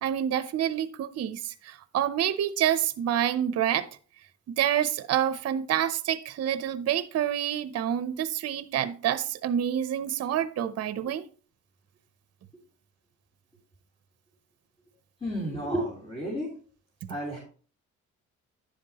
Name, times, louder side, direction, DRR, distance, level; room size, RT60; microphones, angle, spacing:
voice 1, 0.0-3.9 4.5-11.2, right 10 dB, 55° right, 14 dB, 0.7 m, -27 dB
voice 2, 15.2-16.5 17.1-17.4, equal, 20° left, -4 dB, 3.5 m, -31 dB
10.5 x 7.4 x 2.9 m, 0.40 s
cardioid pair, 90°, 30 cm